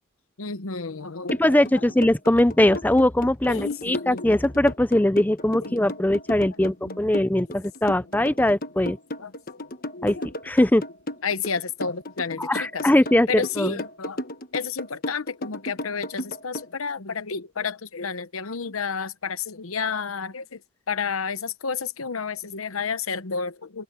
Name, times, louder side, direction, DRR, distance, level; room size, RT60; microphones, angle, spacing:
voice 1, 0.4-1.8 2.6-2.8 3.5-4.4 5.6-5.9 6.6-7.4 7.9-8.3 9.2-9.3 9.9-10.3 11.2-12.9 13.3-14.2 14.5-20.6 20.9-23.8, left 5 dB, 85° left, 1.0 m, -31 dB
sound 1, 1.3-16.7, left 1 dB, 45° left, 1.3 m, -34 dB
voice 2, 1.4-9.0 10.0-10.2 10.4-10.8 12.4-13.8, left 1 dB, 10° left, 0.5 m, -21 dB
head